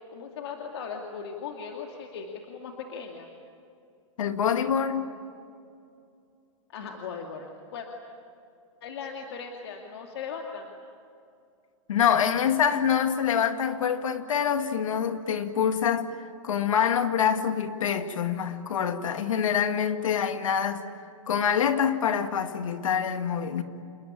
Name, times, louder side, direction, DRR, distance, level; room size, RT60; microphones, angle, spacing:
voice 1, 0.1-3.3 6.7-7.9 8.8-10.7, left 6 dB, 50° left, 2 dB, 2.5 m, -38 dB
voice 2, 4.2-5.1 11.9-16.1 16.4-20.8 21.3-23.6, left 8 dB, 80° left, 7 dB, 2.2 m, -25 dB
28.5 x 21.5 x 9.0 m, 2.5 s
hypercardioid pair, 175°, 17 cm